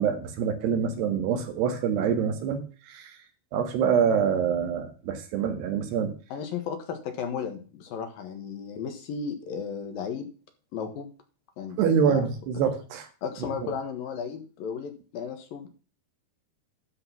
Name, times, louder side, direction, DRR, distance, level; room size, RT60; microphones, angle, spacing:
voice 1, 0.0-2.6 2.9-3.2 3.5-6.1 11.8-13.1 13.6-13.7, right 7 dB, 85° right, 6 dB, 3.8 m, -25 dB
voice 2, 6.3-10.3 10.7-11.1 11.6-12.3 13.2-15.7, left 6 dB, 65° left, 6 dB, 3.1 m, -34 dB
12.5 x 5.1 x 5.9 m, 0.37 s
omnidirectional pair, 4.6 m